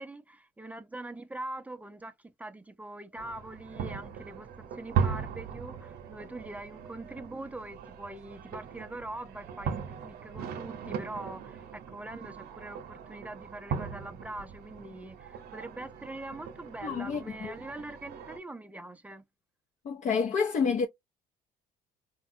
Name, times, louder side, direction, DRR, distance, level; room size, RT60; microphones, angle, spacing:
voice 1, 0.0-19.2, right 2 dB, 10° right, 0.4 m, -43 dB
sound 1, 3.2-18.4, right 7 dB, 70° right, 0.7 m, -38 dB
voice 2, 16.8-17.5 19.8-20.9, left 5 dB, 45° left, 0.5 m, -29 dB
3.3 x 2.2 x 2.6 m
cardioid pair, 110°, 17 cm